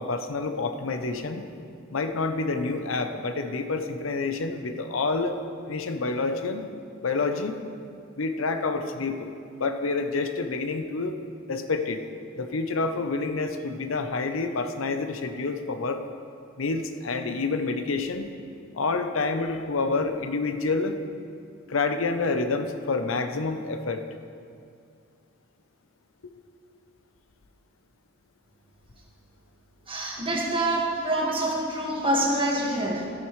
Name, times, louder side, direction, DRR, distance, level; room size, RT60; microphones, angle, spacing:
voice 1, 0.0-1.4 1.9-5.4 5.7-6.7 7.0-7.6 8.2-11.2 11.5-12.0 12.4-16.0 16.6-18.3 18.7-21.0 21.7-24.0, left 3 dB, 90° left, 7 dB, 0.7 m, -28 dB
voice 2, 29.9-33.1, right 1 dB, 25° right, -2 dB, 1.7 m, -26 dB
14.0 x 11.0 x 3.2 m, 2.4 s
head